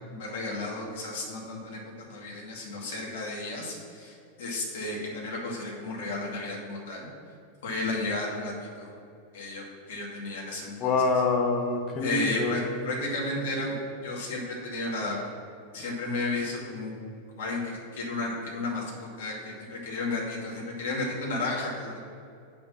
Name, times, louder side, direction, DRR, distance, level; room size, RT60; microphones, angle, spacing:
voice 1, 0.1-1.8 2.1-7.1 7.6-8.9 9.3-10.9 12.0-13.7 14.0-15.2 15.7-16.9 17.4-22.1, left 2 dB, 55° left, -3 dB, 2.3 m, -33 dB
voice 2, 10.8-12.7, left 3 dB, 35° left, 3 dB, 1.1 m, -26 dB
7.5 x 5.9 x 5.9 m, 2.4 s
figure-of-eight pair, 90°, 0 cm